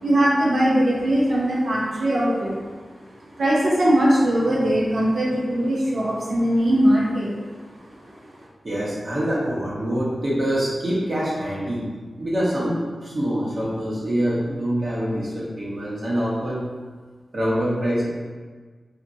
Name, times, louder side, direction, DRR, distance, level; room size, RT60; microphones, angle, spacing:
voice 1, 0.0-7.3 7.8-8.4, right 1 dB, 80° right, -6 dB, 0.7 m, -21 dB
voice 2, 8.6-11.8 12.2-16.6 17.3-18.1, equal, 45° right, -6 dB, 1.1 m, -25 dB
4.3 x 2.2 x 2.6 m, 1.4 s
wide cardioid pair, 90°, 0 cm